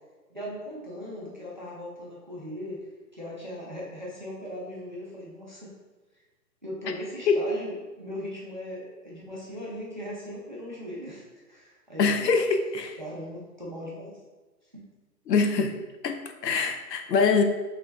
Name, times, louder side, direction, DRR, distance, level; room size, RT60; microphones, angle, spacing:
voice 1, 0.3-2.9 3.1-5.7 6.6-12.3 13.0-14.2 14.7-14.8, equal, 30° right, -5 dB, 0.4 m, -39 dB
voice 2, 12.0-13.0 15.3-17.4, left 5 dB, 75° left, 6 dB, 0.6 m, -24 dB
3.4 x 3.2 x 3.0 m, 1.2 s
hypercardioid pair, 160°, 50 cm